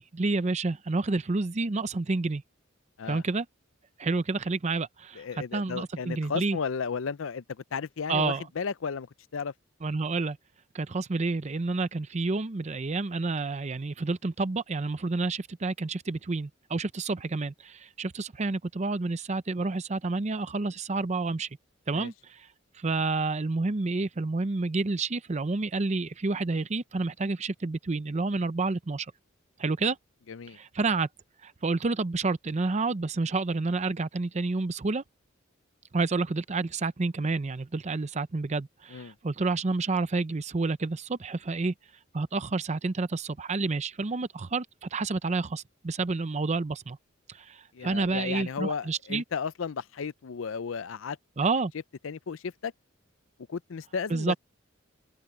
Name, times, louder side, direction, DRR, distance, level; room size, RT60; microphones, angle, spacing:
voice 1, 0.0-2.4 3.1-3.5 4.0-5.2 5.5-6.6 8.1-8.5 9.8-10.4 10.7-21.5 21.9-22.5 22.7-29.1 29.6-30.0 30.5-31.1 31.4-35.0 35.9-41.7 42.1-47.0 47.3-49.2 51.4-51.7 54.1-54.4, right 3 dB, 35° right, 0.6 m, -29 dB
voice 2, 5.2-9.1 9.3-9.5 21.9-22.1 30.3-30.6 38.9-39.1 47.7-51.2 52.0-52.7 53.5-54.4, left 6 dB, 70° left, 0.5 m, -34 dB
head